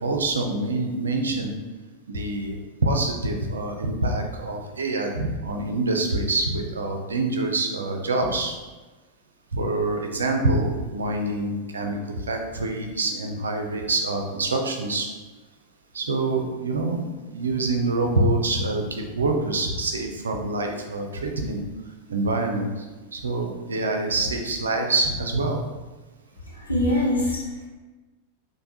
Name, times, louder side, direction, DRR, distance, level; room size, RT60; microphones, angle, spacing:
voice 1, 0.0-1.6 2.1-2.6 2.8-8.5 9.5-15.1 15.9-21.6 22.1-22.9 23.1-25.6, right 2 dB, 70° right, 3 dB, 0.4 m, -26 dB
voice 2, 26.4-27.7, left 1 dB, 85° left, -5 dB, 0.8 m, -24 dB
3.2 x 2.1 x 2.7 m, 1.2 s
figure-of-eight pair, 90°, 0 cm